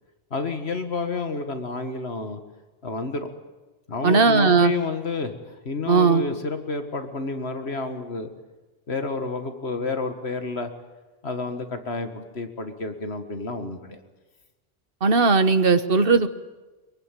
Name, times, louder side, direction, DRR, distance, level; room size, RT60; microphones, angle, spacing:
voice 1, 0.3-2.4 2.8-3.3 3.9-8.3 8.9-10.7 11.2-14.0, left 4 dB, 70° left, 7 dB, 2.0 m, -30 dB
voice 2, 4.0-4.7 5.9-6.2 15.0-16.3, right 4 dB, 60° right, 11 dB, 1.4 m, -18 dB
23.5 x 23.0 x 9.1 m, 1.2 s
omnidirectional pair, 1.1 m